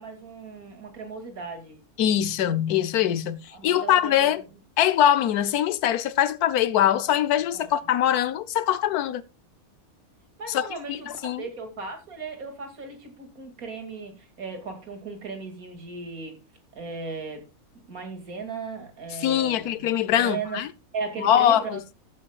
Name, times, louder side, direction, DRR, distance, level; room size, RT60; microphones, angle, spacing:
voice 1, 0.0-1.8 3.5-4.3 7.5-7.7 10.4-16.4 16.8-17.5 17.9-20.6 20.9-21.8, right 4 dB, 70° right, 2.9 m, -37 dB
voice 2, 2.0-4.4 4.8-9.2 10.5-10.6 10.9-11.4 19.2-20.7 21.2-21.8, left 11 dB, 80° left, 1.3 m, -22 dB
14.5 x 8.9 x 2.4 m
omnidirectional pair, 1.6 m